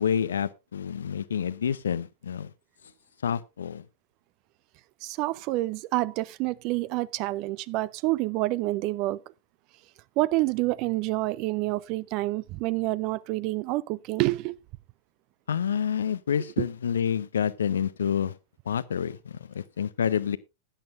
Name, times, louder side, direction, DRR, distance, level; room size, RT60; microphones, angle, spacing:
voice 1, 0.0-2.5 3.2-3.8 15.5-18.4 18.7-20.4, left 8 dB, 65° left, 0.5 m, -28 dB
voice 2, 5.0-9.2 10.2-14.6 16.6-16.7, right 19 dB, 40° right, 0.5 m, -28 dB
15.5 x 10.5 x 2.5 m
figure-of-eight pair, 90°, 0 cm